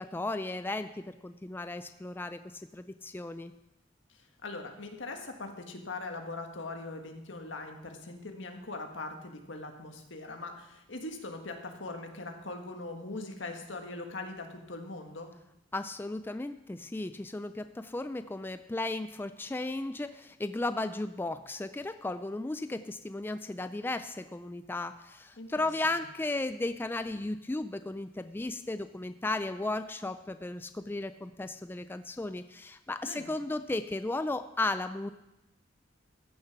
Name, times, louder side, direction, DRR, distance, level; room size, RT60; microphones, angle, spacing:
voice 1, 0.0-2.4 2.7-3.5 15.7-35.1, left 2 dB, 10° left, 11 dB, 0.3 m, -35 dB
voice 2, 4.1-15.3 25.4-25.7 33.0-33.3, left 2 dB, 85° left, 4 dB, 1.6 m, -41 dB
14.5 x 6.6 x 5.9 m, 0.91 s
head